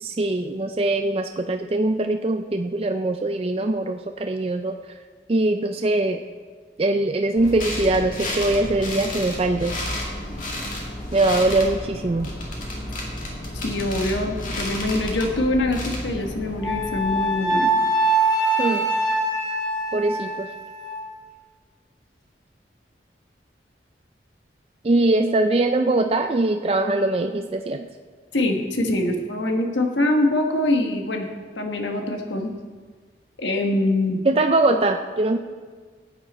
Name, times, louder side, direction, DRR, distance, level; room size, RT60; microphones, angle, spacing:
voice 1, 0.0-4.7 5.3-6.2 6.8-9.7 11.1-12.3 18.6-18.9 19.9-20.5 24.8-27.9 34.3-35.4, right 2 dB, 30° right, 5 dB, 0.4 m, -22 dB
sound 1, 7.4-17.6, left 1 dB, 45° left, 2.2 m, -31 dB
voice 2, 13.6-17.7 28.3-31.3 31.5-32.5 33.4-34.2, left 1 dB, 85° left, 3 dB, 1.4 m, -24 dB
Wind instrument woodwind instrument, 16.6-21.0, right 2 dB, 25° left, 4.0 m, -23 dB
15.0 x 9.0 x 4.3 m, 1.5 s
head